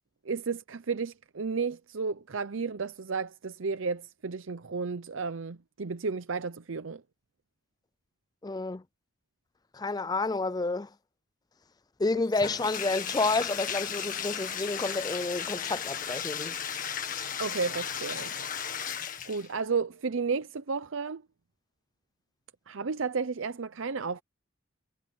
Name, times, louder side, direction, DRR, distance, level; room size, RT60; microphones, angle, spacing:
voice 1, 0.2-7.0 17.4-18.3 19.2-21.2 22.7-24.2, right 5 dB, 75° right, 0.7 m, -32 dB
voice 2, 8.4-8.8 9.7-10.9 12.0-16.6, left 3 dB, 20° left, 0.4 m, -30 dB
Bathtub (filling or washing), 12.3-19.6, left 8 dB, 40° left, 1.9 m, -35 dB
head